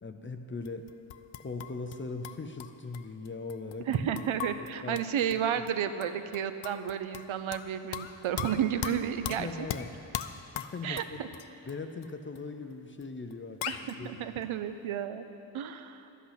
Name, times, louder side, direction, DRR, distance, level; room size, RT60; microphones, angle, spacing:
voice 1, 0.0-0.9 1.4-3.9 4.8-5.0 9.3-9.9 10.5-11.2 11.6-14.4, left 3 dB, 25° left, 6 dB, 0.4 m, -40 dB
sound 1, 0.6-2.0 2.2-5.4 5.7-5.8 6.0-7.7 7.9-11.7 12.0-12.1 12.3-12.4 13.0-13.1 13.3-13.4 13.6-13.9, left 11 dB, 80° left, 0.6 m, -38 dB
voice 2, 3.9-9.7 10.8-11.3 13.7-15.3 15.5-16.1, right 9 dB, 85° right, 10 dB, 0.7 m, -32 dB
12.0 x 8.4 x 5.8 m, 2.9 s
wide cardioid pair, 155°, 47 cm